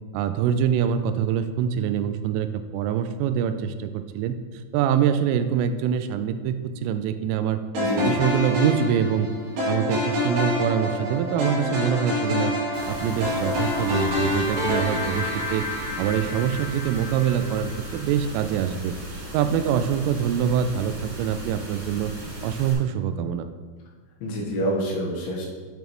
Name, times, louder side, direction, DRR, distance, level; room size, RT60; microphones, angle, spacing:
voice 1, 0.1-2.5 2.7-4.4 4.7-7.6 8.0-9.3 9.7-12.5 12.9-15.6 16.0-22.1 22.4-23.5, right 8 dB, 90° right, 10 dB, 3.2 m, -24 dB
sound 1, 7.7-18.0, left 1 dB, 65° right, 4.5 m, -27 dB
voice 2, 7.8-8.2 24.2-25.5, equal, 75° left, -3 dB, 3.6 m, -27 dB
sound 2, 12.7-22.7, right 1 dB, 35° right, 1.9 m, -38 dB
10.5 x 6.9 x 3.1 m, 1.5 s
omnidirectional pair, 5.7 m